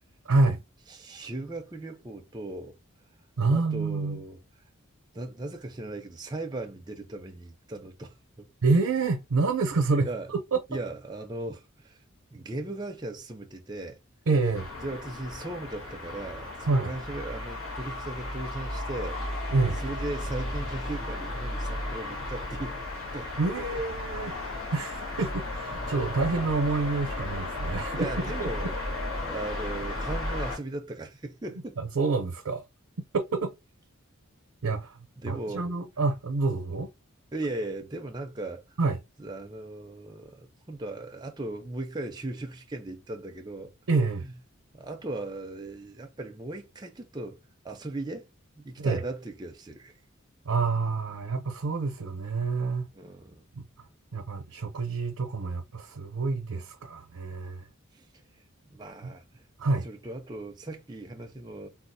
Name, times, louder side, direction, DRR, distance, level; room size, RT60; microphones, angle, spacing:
voice 1, 0.3-0.6 3.4-4.2 8.6-10.6 14.3-14.7 16.7-16.9 19.5-19.8 23.4-24.3 24.7-28.1 28.4-28.5 32.0-32.6 33.1-33.6 34.6-35.0 35.3-36.9 38.8-39.0 43.9-44.3 48.8-49.0 50.4-52.9 53.6-53.7 54.1-57.7 59.0-59.1 59.6-59.9, right 3 dB, 85° right, 0.6 m, -27 dB
voice 2, 0.9-2.8 3.5-4.4 5.1-8.5 10.0-10.3 10.7-12.0 12.3-14.0 14.8-19.2 19.8-22.9 23.1-23.7 28.0-28.7 29.3-31.8 35.2-35.7 37.3-38.6 39.2-43.7 44.2-44.3 44.7-47.4 47.6-48.3 48.6-49.9 52.9-53.5 57.9-58.1 58.7-59.4 59.8-61.7, right 2 dB, 20° right, 0.5 m, -37 dB
sound 1, 14.5-30.6, left 1 dB, 70° left, 1.3 m, -34 dB
3.5 x 2.4 x 2.6 m
head